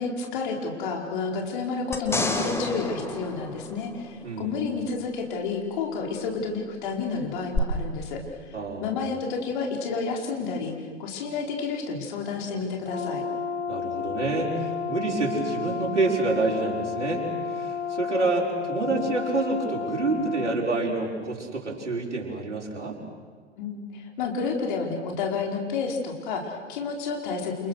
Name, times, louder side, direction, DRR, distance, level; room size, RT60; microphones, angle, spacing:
voice 1, 0.0-13.2 23.6-27.7, left 4 dB, 45° left, 2 dB, 4.7 m, -30 dB
sound 1, 1.9-4.4 7.5-7.6, left 3 dB, 5° left, 1.9 m, -30 dB
voice 2, 8.5-9.0 13.7-23.0, right 3 dB, 75° right, -3 dB, 5.6 m, -28 dB
Brass instrument, 12.8-20.6, left 6 dB, 80° left, 2.4 m, -32 dB
29.0 x 28.5 x 6.5 m, 1.5 s
figure-of-eight pair, 105°, 35 cm